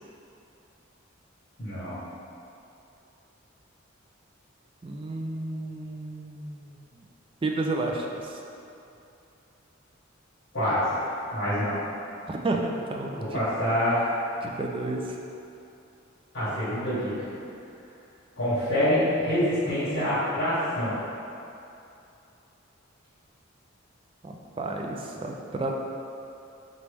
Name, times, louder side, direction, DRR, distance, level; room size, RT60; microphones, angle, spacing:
voice 1, 1.6-2.0 10.5-10.8 11.3-11.7 13.2-14.1 16.3-17.3 18.4-21.0, equal, 65° left, -14 dB, 1.4 m, -26 dB
voice 2, 4.8-6.8 7.4-8.4 12.3-13.4 14.4-15.2 24.2-25.7, right 2 dB, 25° right, 0 dB, 0.3 m, -31 dB
3.9 x 3.1 x 3.4 m, 2.7 s
head